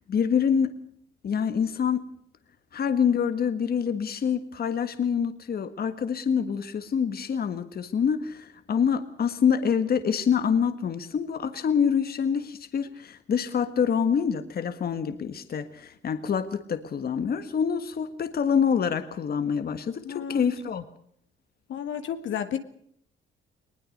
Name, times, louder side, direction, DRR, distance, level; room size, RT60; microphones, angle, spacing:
voice 1, 0.1-0.7 1.2-2.0 2.7-20.8, left 7 dB, 50° left, 10 dB, 1.6 m, -26 dB
voice 2, 20.0-20.5 21.7-22.6, left 9 dB, 75° left, 8 dB, 1.9 m, -31 dB
20.5 x 20.0 x 6.6 m, 0.67 s
cardioid pair, 90°, 20 cm